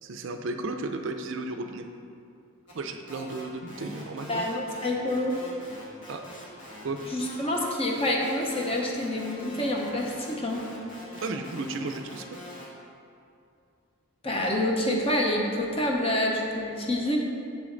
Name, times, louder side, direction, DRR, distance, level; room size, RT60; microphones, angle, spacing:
voice 1, 0.0-1.9 2.7-4.4 6.1-6.3 6.8-7.0 11.2-12.3, right 3 dB, 60° right, 6 dB, 0.4 m, -34 dB
sound 1, 2.7-2.8 3.1-12.7, left 1 dB, 55° left, 1.4 m, -44 dB
voice 2, 4.3-5.3 7.1-10.6 14.2-17.2, left 1 dB, 25° left, 0 dB, 0.7 m, -27 dB
6.3 x 6.3 x 3.9 m, 2.5 s
head